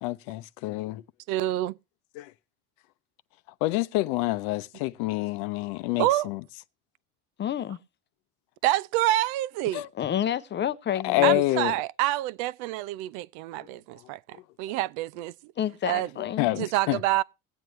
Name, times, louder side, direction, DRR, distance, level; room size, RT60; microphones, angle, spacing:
voice 1, 0.0-1.0 2.2-2.3 3.6-6.4 9.7-9.9 11.0-11.7 14.7-14.8 16.2-17.0, left 17 dB, 70° left, 0.7 m, -27 dB
voice 2, 1.3-1.8 6.0-6.3 8.6-9.8 11.2-15.3 15.8-16.1 16.5-17.2, right 15 dB, 75° right, 0.5 m, -27 dB
voice 3, 7.4-7.8 10.0-11.4 15.6-16.5, left 10 dB, 25° left, 0.6 m, -29 dB
20.0 x 7.8 x 3.1 m
supercardioid pair, 115°, 43 cm